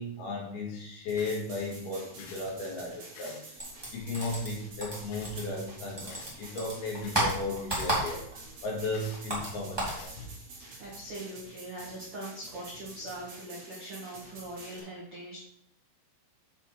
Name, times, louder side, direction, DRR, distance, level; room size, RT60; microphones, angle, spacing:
voice 1, 0.0-3.6 3.9-10.2, left 2 dB, 65° left, -2 dB, 3.2 m, -35 dB
sound 1, 1.1-14.8, right 3 dB, 60° right, 1.6 m, -49 dB
sound 2, 1.2-1.4 2.2-2.4 3.1-3.4 4.1-4.4 5.1-5.4 6.1-6.4 7.0-7.3 7.9-8.2 8.9-9.2 9.9-10.2, left 5 dB, 80° left, 3.8 m, -49 dB
sound 3, 3.6-5.7 6.0-8.5 8.7-10.0, right 1 dB, 20° right, 0.7 m, -32 dB
voice 2, 10.8-15.4, right 1 dB, 85° right, -6 dB, 1.2 m, -41 dB
6.9 x 6.9 x 4.5 m, 0.72 s
omnidirectional pair, 5.7 m